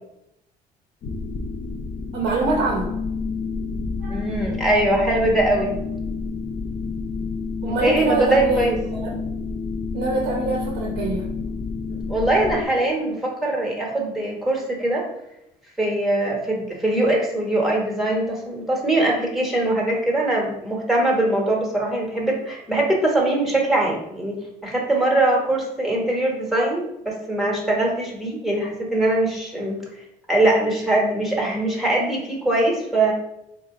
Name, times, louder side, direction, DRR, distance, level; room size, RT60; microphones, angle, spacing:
sound 1, 1.0-12.7, left 4 dB, 45° left, 0.5 m, -29 dB
voice 1, 2.1-3.0 4.0-4.2 7.6-9.1 9.9-11.3, right 3 dB, 80° right, -1 dB, 0.8 m, -25 dB
voice 2, 4.1-5.7 7.7-8.8 11.9-15.0 15.8-29.8 30.3-33.1, right 1 dB, ahead, -2 dB, 1.1 m, -22 dB
4.5 x 2.2 x 3.7 m, 0.83 s
cardioid pair, 110°, 17 cm